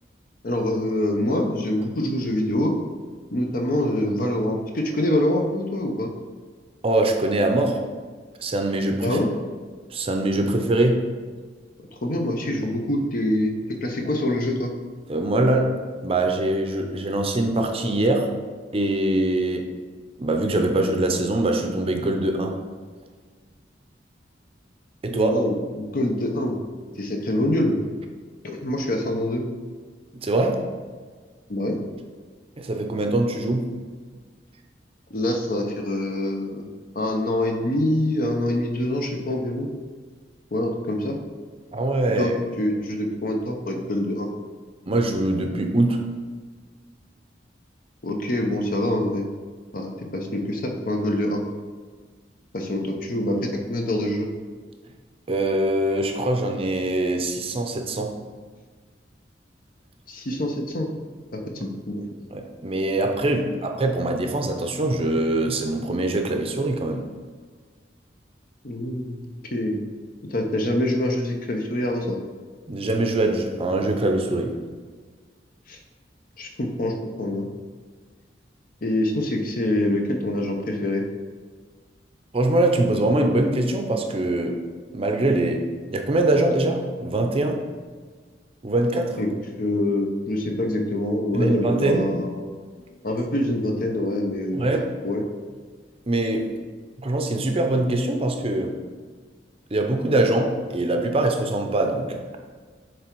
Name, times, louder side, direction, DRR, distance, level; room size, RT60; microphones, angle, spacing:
voice 1, 0.4-2.7 3.3-6.1 9.0-9.3 12.0-14.7 25.1-26.6 27.0-27.8 28.4-29.4 31.5-31.8 35.1-36.7 36.9-39.7 40.5-41.2 42.2-44.3 48.0-49.2 49.7-51.4 52.5-54.3 60.1-60.9 61.3-62.0 68.6-69.8 70.3-72.2 75.7-75.8 76.4-77.5 78.8-81.0 89.2-89.3 89.6-92.4 93.0-94.6 95.0-95.2, left 1 dB, 55° left, 3 dB, 0.8 m, -25 dB
voice 2, 6.8-7.8 8.4-9.2 9.9-11.1 15.1-15.7 16.0-18.3 18.7-19.7 20.2-22.6 25.0-25.4 30.1-30.6 32.6-33.7 41.7-42.3 44.9-46.0 55.3-58.2 62.3-67.1 72.7-74.5 82.3-84.6 84.9-85.7 85.9-87.6 88.6-89.2 91.3-92.1 94.5-94.9 96.1-96.5 97.0-98.8 99.7-102.2, right 2 dB, 35° right, 4 dB, 0.6 m, -23 dB
7.6 x 3.4 x 4.6 m, 1.5 s
head